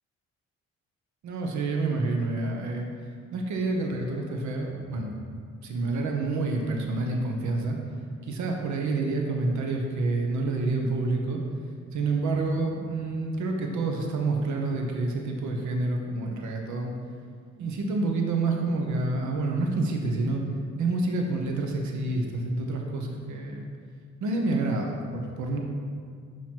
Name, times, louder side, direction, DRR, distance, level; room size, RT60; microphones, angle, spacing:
voice 1, 1.2-2.9 3.3-5.2 5.6-7.8 8.2-11.4 11.9-16.9 17.6-20.4 20.8-23.6 24.2-25.6, right 3 dB, 70° right, 2 dB, 0.8 m, -28 dB
7.6 x 3.0 x 4.4 m, 2.2 s
cardioid pair, 90°, 30 cm